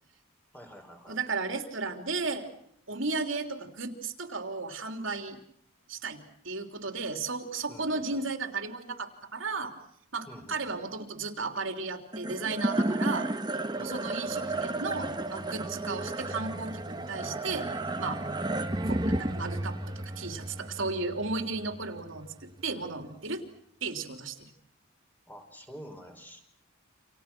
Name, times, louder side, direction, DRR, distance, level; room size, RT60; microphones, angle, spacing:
voice 1, 0.5-1.2 7.7-8.2 10.3-10.8 13.8-14.7 25.3-26.4, equal, 10° left, 3 dB, 5.1 m, -48 dB
voice 2, 1.1-2.5 2.9-5.4 5.9-6.2 6.4-9.7 10.1-13.3 13.8-17.7 18.0-18.2 18.9-23.4 23.8-24.5, right 3 dB, 70° right, 6 dB, 3.3 m, -34 dB
sound 1, 12.1-22.6, right 1 dB, 20° right, 1.5 m, -33 dB
29.5 x 27.5 x 6.2 m, 0.71 s
head